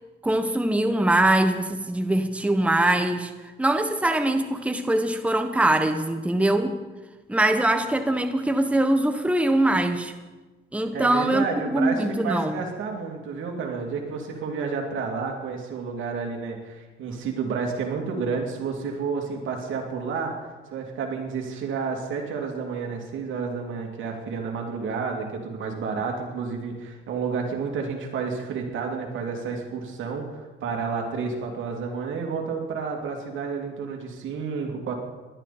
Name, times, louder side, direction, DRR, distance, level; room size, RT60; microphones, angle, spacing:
voice 1, 0.2-3.3 3.6-6.7 7.3-10.1 10.7-11.4 11.7-12.6, right 1 dB, 5° right, 7 dB, 1.1 m, -22 dB
voice 2, 10.9-20.3 20.7-34.9, right 5 dB, 80° right, 1 dB, 2.8 m, -30 dB
19.5 x 13.0 x 4.3 m, 1.3 s
cardioid pair, 90°, 20 cm